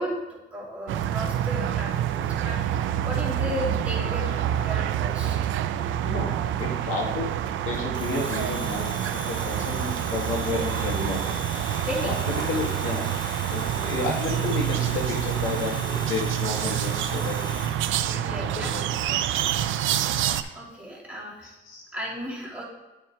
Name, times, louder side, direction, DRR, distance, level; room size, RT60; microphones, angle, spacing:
voice 1, 0.0-5.4 11.8-12.7 17.3-17.5 17.9-19.6 19.9-20.2 20.5-21.5 21.9-22.6, equal, 5° right, -5 dB, 2.5 m, -35 dB
sound 1, 0.9-20.4, right 11 dB, 80° right, 0.4 m, -27 dB
voice 2, 4.0-4.9 6.0-6.3 6.6-7.3 7.6-8.9 9.4-11.2 12.0-12.1 12.5-13.0 13.5-17.4 18.3-18.8 21.7-21.9, left 3 dB, 90° left, -1 dB, 1.8 m, -31 dB
Domestic sounds home sounds, 7.9-17.8, left 2 dB, 20° left, 1.1 m, -39 dB
8.2 x 4.4 x 4.7 m, 1.1 s
cardioid pair, 90°, 20 cm